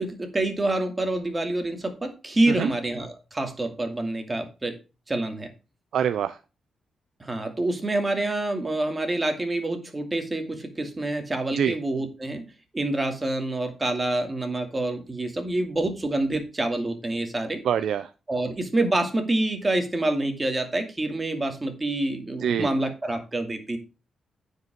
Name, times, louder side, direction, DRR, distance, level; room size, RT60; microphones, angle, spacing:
voice 1, 0.0-4.7 5.1-5.5 7.2-12.4 12.7-17.6 18.3-23.8, right 2 dB, 25° right, 6 dB, 2.4 m, -27 dB
voice 2, 5.9-6.3 11.6-11.7 17.7-18.0 22.4-22.7, right 8 dB, 80° right, 13 dB, 0.5 m, -24 dB
9.6 x 5.5 x 5.2 m, 0.31 s
cardioid pair, 80°, 0 cm